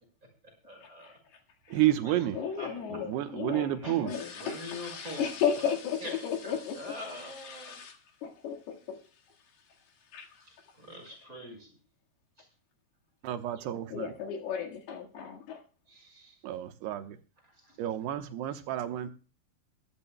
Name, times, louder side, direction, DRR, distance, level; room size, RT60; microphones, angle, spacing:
voice 1, 0.6-1.1 1.8-2.2 2.6-2.7 3.8-4.0 4.3-5.6 6.0-7.8 10.4-11.7 15.9-16.4 17.5-17.8, left 1 dB, 20° right, 2 dB, 5.4 m, -44 dB
voice 2, 1.7-2.4 2.9-4.2 13.2-14.1 16.4-17.2 17.8-19.1, right 13 dB, 85° right, 9 dB, 3.1 m, -30 dB
voice 3, 2.4-8.0 8.2-9.0 10.1-10.3 13.9-15.6, left 7 dB, 75° left, 1 dB, 3.8 m, -34 dB
22.5 x 12.0 x 2.2 m, 0.38 s
omnidirectional pair, 4.7 m